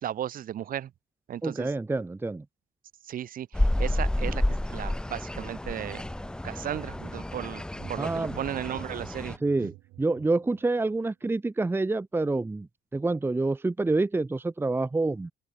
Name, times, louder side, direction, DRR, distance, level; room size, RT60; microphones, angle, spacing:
voice 1, 0.0-0.9 1.3-1.7 3.1-4.4 4.7-6.0 6.4-9.7, right 10 dB, 55° right, 2.7 m, -35 dB
voice 2, 1.4-2.4 8.0-8.3 9.4-12.7 12.9-15.3, right 3 dB, 15° right, 1.1 m, -27 dB
sound 1, 3.5-9.4, left 1 dB, 5° left, 0.8 m, -30 dB
sound 2, 7.7-11.0, right 20 dB, 90° right, 7.7 m, -50 dB
open air
cardioid pair, 110°, 17 cm